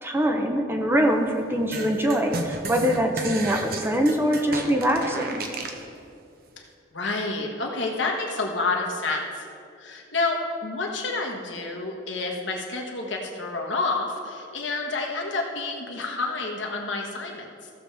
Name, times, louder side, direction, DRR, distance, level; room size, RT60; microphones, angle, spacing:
voice 1, 0.0-5.4, equal, 10° right, 3 dB, 0.7 m, -23 dB
sound 1, 1.7-5.8, right 2 dB, 50° right, 0.9 m, -32 dB
voice 2, 6.9-9.4 9.8-17.7, left 3 dB, 70° left, 0 dB, 1.4 m, -29 dB
15.5 x 7.0 x 3.4 m, 2.4 s
head